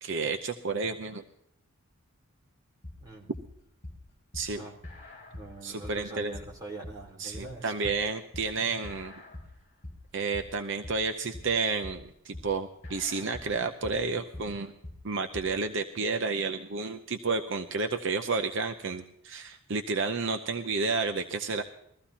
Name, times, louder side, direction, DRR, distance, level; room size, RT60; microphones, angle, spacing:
voice 1, 0.0-1.2 4.3-4.6 5.6-6.3 7.2-9.1 10.1-14.7 15.0-21.6, right 4 dB, 55° right, 7 dB, 0.7 m, -31 dB
sound 1, 2.8-15.6, left 1 dB, 35° left, 3.7 m, -45 dB
voice 2, 5.3-7.9, right 2 dB, 15° right, -2 dB, 3.5 m, -43 dB
21.5 x 15.0 x 2.9 m, 0.72 s
head